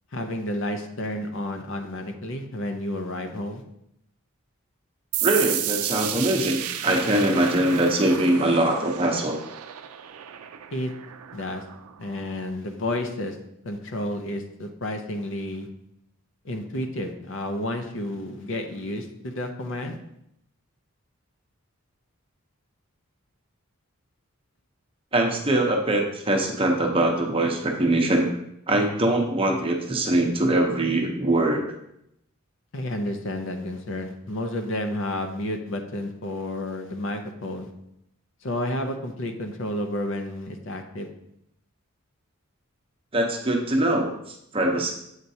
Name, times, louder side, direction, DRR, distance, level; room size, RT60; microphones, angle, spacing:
voice 1, 0.1-3.6 10.7-10.9 11.3-11.6 12.0-13.4 13.6-15.7 16.4-20.0 32.7-37.7 38.4-41.1, left 1 dB, 60° left, 6 dB, 0.6 m, -31 dB
sound 1, 5.1-12.5, right 11 dB, 85° right, 0.4 m, -32 dB
voice 2, 5.2-9.4 25.1-28.3 28.7-31.6 43.1-44.9, right 1 dB, 25° right, 2 dB, 0.7 m, -22 dB
8.1 x 4.4 x 2.7 m, 0.79 s
head